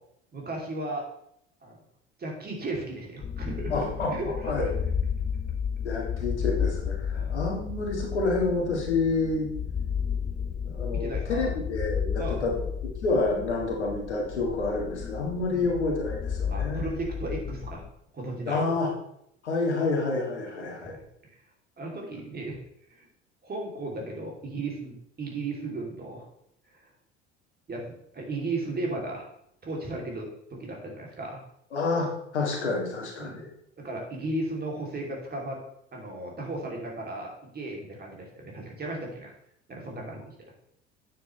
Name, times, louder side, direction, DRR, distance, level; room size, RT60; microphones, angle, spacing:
voice 1, 0.3-1.0 1.6-1.8 2.2-4.7 7.1-7.3 10.8-11.5 12.2-12.4 15.5-15.7 16.5-17.9 18.1-18.6 20.5-21.0 21.8-22.6 23.0-23.1 23.4-26.3 27.7-29.2 29.6-31.4 33.2-33.4 33.8-35.6 35.9-39.3 39.7-40.2, right 2 dB, 30° right, -1 dB, 2.9 m, -35 dB
sound 1, 3.2-17.9, left 7 dB, 20° left, 0.6 m, -32 dB
voice 2, 3.7-4.1 4.4-4.6 5.8-9.5 10.7-16.9 18.5-18.9 19.4-21.0 31.7-32.1 32.3-33.5, left 3 dB, 85° left, -1 dB, 1.9 m, -28 dB
9.1 x 6.8 x 3.2 m, 0.74 s
figure-of-eight pair, 65°, 33 cm